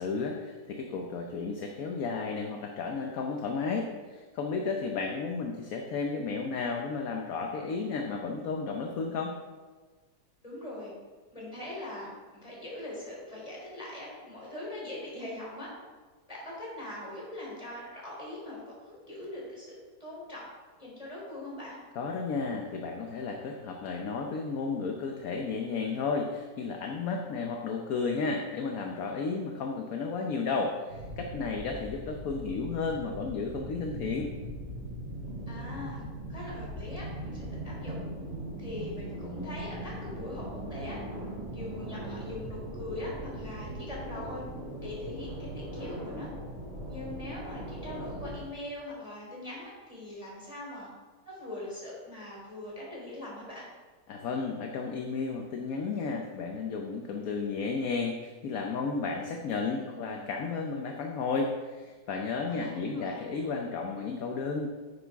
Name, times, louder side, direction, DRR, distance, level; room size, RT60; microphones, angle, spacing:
voice 1, 0.0-9.3 22.0-34.3 54.1-64.7, left 4 dB, 60° left, 2 dB, 1.1 m, -33 dB
voice 2, 10.4-10.9 11.3-15.7 16.3-20.5 20.8-21.8 35.5-38.0 38.6-41.0 41.5-44.4 44.8-46.3 46.9-50.9 51.3-53.7 59.7-60.3 62.5-63.2, left 1 dB, 20° left, -5 dB, 3.5 m, -42 dB
sound 1, 30.9-48.4, right 1 dB, 50° right, 4.1 m, -40 dB
9.6 x 9.4 x 3.5 m, 1.4 s
omnidirectional pair, 2.0 m